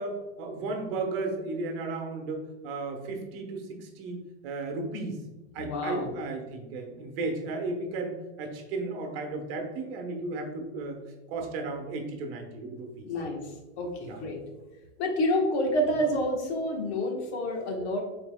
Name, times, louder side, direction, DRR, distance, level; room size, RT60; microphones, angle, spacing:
voice 1, 0.0-5.2 5.5-11.0 11.3-13.1 14.0-14.2, right 3 dB, 55° right, 4 dB, 1.1 m, -34 dB
voice 2, 5.6-6.1 13.0-14.4 15.0-18.0, left 1 dB, 65° left, 2 dB, 1.3 m, -28 dB
5.8 x 4.0 x 2.2 m, 1.1 s
supercardioid pair, 145°, 35 cm